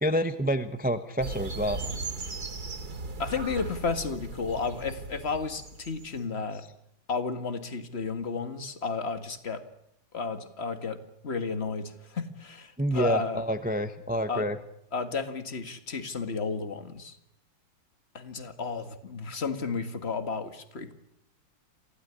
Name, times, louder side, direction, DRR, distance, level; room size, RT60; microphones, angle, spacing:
voice 1, 0.0-1.8 12.8-14.6, equal, 10° right, 10 dB, 0.5 m, -28 dB
sound 1, 1.2-6.2, right 3 dB, 50° right, 3.3 m, -37 dB
voice 2, 3.2-6.7 7.1-9.6 10.1-11.0 11.2-13.4 14.3-14.5 14.9-17.2 18.1-20.9, left 4 dB, 30° left, 9 dB, 1.9 m, -32 dB
26.5 x 16.0 x 9.9 m, 0.81 s
omnidirectional pair, 2.2 m